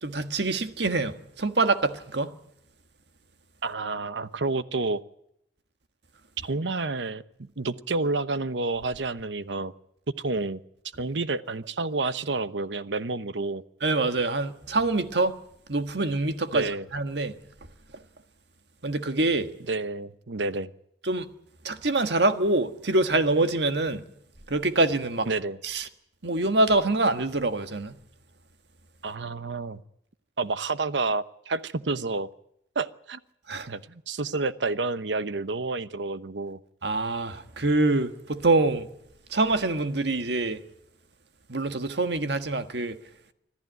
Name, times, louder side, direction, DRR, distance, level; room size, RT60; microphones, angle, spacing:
voice 1, 0.0-2.3 13.8-15.3 15.7-17.3 18.8-19.5 21.0-21.3 21.6-24.0 24.5-25.3 25.6-25.9 26.2-27.9 33.5-33.7 36.8-38.9 39.3-40.6 41.5-43.0, right 2 dB, 75° right, 1.6 m, -25 dB
voice 2, 3.6-5.0 6.4-9.7 10.2-10.6 11.0-13.6 16.5-16.8 19.7-20.7 25.3-25.6 29.0-29.8 30.4-32.3 32.7-33.2 33.7-36.6, right 3 dB, 90° right, 1.0 m, -29 dB
25.5 x 14.5 x 9.3 m
head